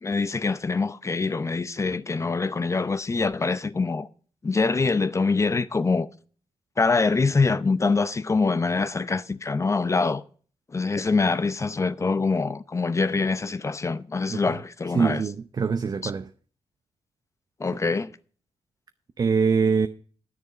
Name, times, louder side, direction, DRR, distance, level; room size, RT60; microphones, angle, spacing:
voice 1, 0.0-4.1 4.4-6.1 6.8-10.2 10.7-15.2 16.0-16.1 17.6-18.1, left 4 dB, 30° left, 0.7 m, -24 dB
voice 2, 14.9-16.3 19.2-19.9, right 5 dB, 40° right, 0.7 m, -23 dB
10.5 x 9.6 x 5.0 m
cardioid pair, 90°, 10 cm